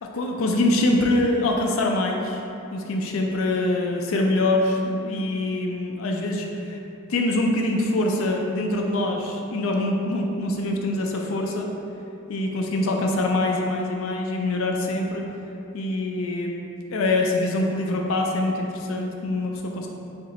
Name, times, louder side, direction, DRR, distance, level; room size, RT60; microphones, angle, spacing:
voice 1, 0.0-2.4 2.7-6.8 7.1-11.7 12.3-15.2 15.7-16.5 16.9-19.9, left 2 dB, 70° left, 1 dB, 0.4 m, -24 dB
2.8 x 2.5 x 4.0 m, 2.8 s
head